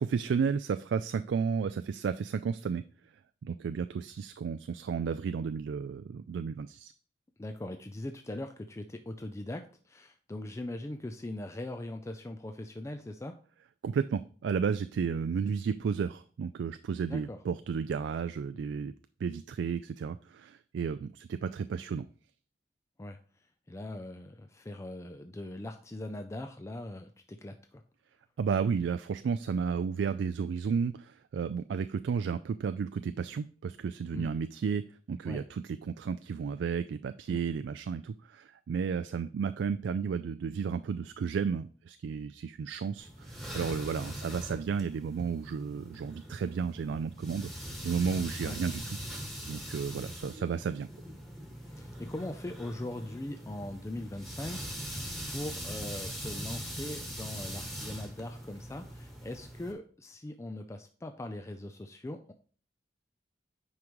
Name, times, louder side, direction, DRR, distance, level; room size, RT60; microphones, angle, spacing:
voice 1, 0.0-2.8 3.4-6.9 13.8-18.9 19.2-22.1 28.4-47.5 47.8-49.0 49.5-50.9, right 6 dB, 85° right, 11 dB, 0.3 m, -33 dB
voice 2, 7.4-13.4 17.1-17.4 23.0-23.2 23.7-27.8 34.1-34.3 35.3-35.4 37.3-37.4 48.4-48.6 51.7-62.3, left 1 dB, 15° left, 6 dB, 0.4 m, -41 dB
sound 1, 43.0-59.7, equal, ahead, 1.6 m, -42 dB
9.5 x 5.1 x 3.0 m, 0.43 s
head